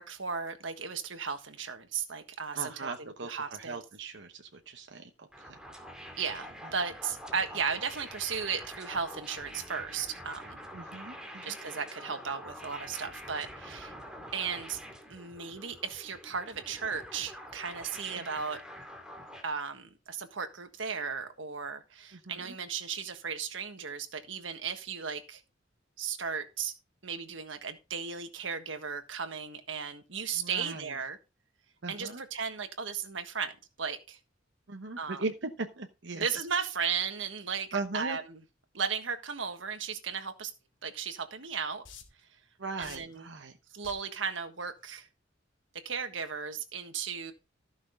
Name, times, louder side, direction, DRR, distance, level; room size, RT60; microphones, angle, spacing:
voice 1, 0.0-2.9 3.3-3.8 6.2-10.6 11.4-13.9 14.3-14.8 15.1-18.6 19.4-25.4 26.0-26.7 27.0-31.2 31.9-34.2 35.0-35.2 36.1-38.4 38.7-40.5 40.8-41.8 42.8-43.2 43.7-45.1 45.8-47.3, right 6 dB, 85° right, 1.6 m, -35 dB
voice 2, 2.5-5.6 10.7-11.6 18.2-18.3 22.1-22.5 30.3-31.0 31.8-32.2 34.7-36.3 37.7-38.2 42.6-43.6, right 3 dB, 65° right, 1.0 m, -39 dB
sound 1, 5.3-19.4, equal, 5° right, 2.4 m, -46 dB
sound 2, 41.1-41.2 41.8-42.3 42.8-43.2 43.8-44.2 44.8-45.0, left 6 dB, 75° left, 2.7 m, -49 dB
14.5 x 6.2 x 3.8 m
head